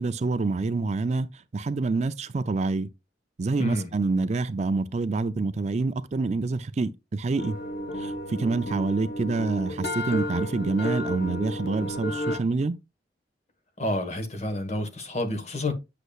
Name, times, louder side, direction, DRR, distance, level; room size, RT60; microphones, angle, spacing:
voice 1, 0.0-2.9 3.4-7.6 8.0-12.8, right 3 dB, 40° right, 0.4 m, -27 dB
sound 1, 7.4-12.4, left 1 dB, 65° left, 1.0 m, -32 dB
voice 2, 13.8-15.7, left 1 dB, 40° left, 1.4 m, -29 dB
8.1 x 6.6 x 2.4 m
head